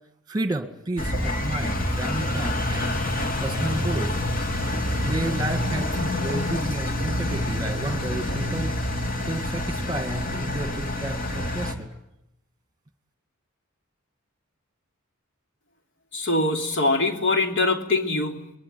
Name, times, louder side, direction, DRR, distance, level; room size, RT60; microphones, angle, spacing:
voice 1, 0.3-3.0 3.4-4.2 5.0-8.9 9.3-11.9, right 2 dB, 20° right, 2.0 m, -31 dB
Engine, 1.0-11.7, left 1 dB, 40° left, 3.4 m, -27 dB
voice 2, 16.1-18.5, left 2 dB, 55° left, 3.2 m, -23 dB
26.0 x 22.5 x 9.6 m
head